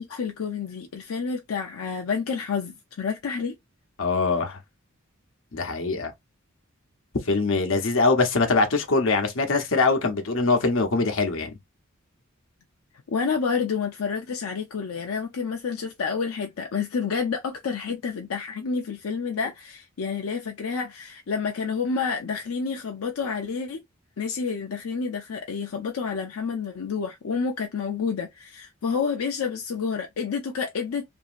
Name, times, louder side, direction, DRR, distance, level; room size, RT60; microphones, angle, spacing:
voice 1, 0.0-3.5 13.1-23.8 24.2-31.1, left 5 dB, 85° left, 0.5 m, -29 dB
voice 2, 4.0-4.6 5.5-6.1 7.3-11.5, left 3 dB, 65° left, 0.9 m, -23 dB
2.9 x 2.6 x 2.5 m
head